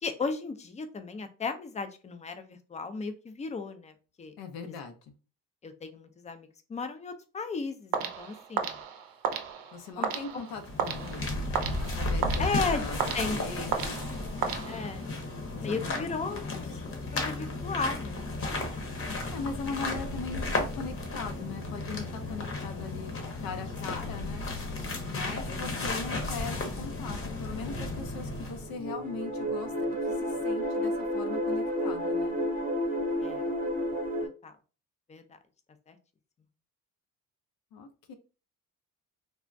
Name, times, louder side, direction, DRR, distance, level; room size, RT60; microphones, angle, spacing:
voice 1, 0.0-4.3 4.6-4.7 5.6-8.8 10.0-10.1 12.4-12.8 13.1-13.9 14.7-15.1 15.6-18.5 25.5-25.9 33.2-33.4 34.2-34.6 35.1-35.2 35.9-36.0, left 4 dB, 20° left, 9 dB, 0.3 m, -35 dB
voice 2, 4.4-5.1 9.7-11.5 11.8-14.0 15.5-16.6 19.3-23.1 23.4-24.4 25.1-29.7 30.0-32.4 37.7-38.1, left 5 dB, 80° left, 7 dB, 0.6 m, -40 dB
sound 1, 7.9-15.2, right 7 dB, 75° right, 0.6 m, -34 dB
sound 2, 10.5-28.7, left 2 dB, 40° left, 0.8 m, -34 dB
sound 3, 27.7-34.3, equal, 25° right, 0.7 m, -31 dB
3.4 x 2.1 x 2.5 m, 0.34 s
cardioid pair, 120°, 35 cm